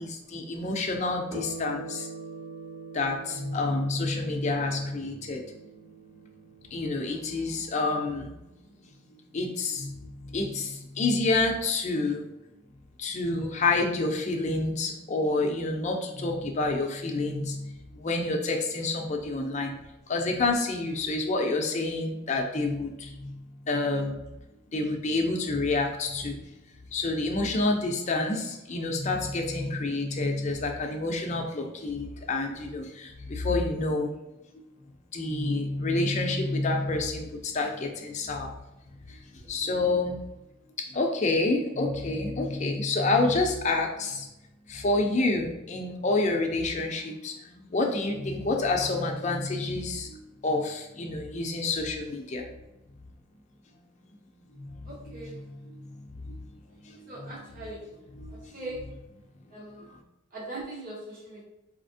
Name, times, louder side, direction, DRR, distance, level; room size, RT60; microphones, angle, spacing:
voice 1, 0.0-2.1 2.9-5.4 6.7-8.5 9.1-12.3 13.0-19.7 20.1-23.4 23.7-24.2 24.7-26.4 26.9-34.1 34.5-34.6 35.1-38.5 39.1-39.2 39.5-40.2 40.8-44.3 44.7-52.5 53.1-53.2 53.7-53.9 54.6-54.7 55.1-55.2 55.5-55.9 56.2-57.3 58.1-58.6 59.8-60.0, left 2 dB, 35° left, 2 dB, 0.5 m, -28 dB
sound 1, 1.3-10.2, right 4 dB, 20° right, 0.6 m, -45 dB
voice 2, 54.8-55.4 57.1-57.9 58.3-58.8 59.5-59.9 60.3-61.4, right 2 dB, 40° right, -6 dB, 1.0 m, -40 dB
4.2 x 2.8 x 2.6 m, 0.95 s
head